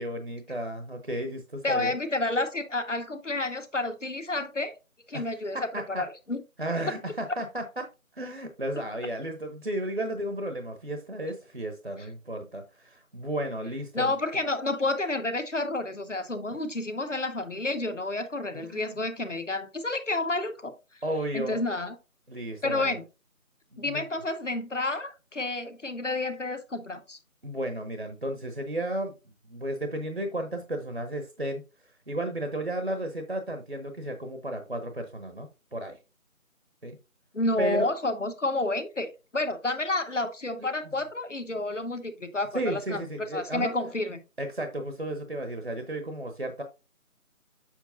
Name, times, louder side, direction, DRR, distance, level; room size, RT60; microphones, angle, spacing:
voice 1, 0.0-1.9 5.1-5.3 5.5-6.0 6.6-7.9 8.1-14.5 18.5-18.8 21.0-21.6 22.3-23.0 23.7-24.1 27.4-29.1 29.5-36.0 36.8-37.0 37.6-37.9 42.5-43.7 44.4-46.6, right 1 dB, 45° right, 0.9 m, -33 dB
voice 2, 1.6-4.7 5.1-6.4 13.9-20.7 21.3-22.0 22.6-23.0 23.8-27.2 37.3-43.0 43.3-44.2, left 2 dB, 60° left, 1.1 m, -30 dB
7.3 x 6.5 x 2.6 m
figure-of-eight pair, 170°, 42 cm